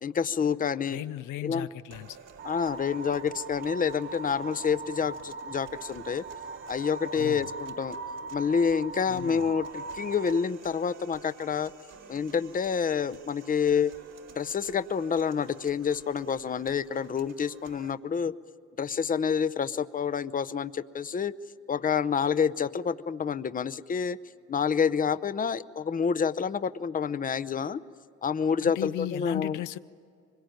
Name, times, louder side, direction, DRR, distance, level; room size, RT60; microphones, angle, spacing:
voice 1, 0.0-1.0 1.4-1.7 2.4-6.2 6.7-8.0 8.3-11.7 12.1-13.9 14.4-18.3 18.8-21.3 21.7-24.2 24.5-27.8 28.2-29.6, left 6 dB, 30° left, 0.7 m, -28 dB
voice 2, 0.9-2.2 7.1-7.5 9.1-9.5 28.6-29.8, left 13 dB, 85° left, 0.6 m, -36 dB
sound 1, 1.9-17.9, right 6 dB, 60° right, 2.2 m, -52 dB
sound 2, 2.4-10.4, right 4 dB, 40° right, 0.6 m, -40 dB
24.5 x 22.5 x 9.1 m
cardioid pair, 90°, 30 cm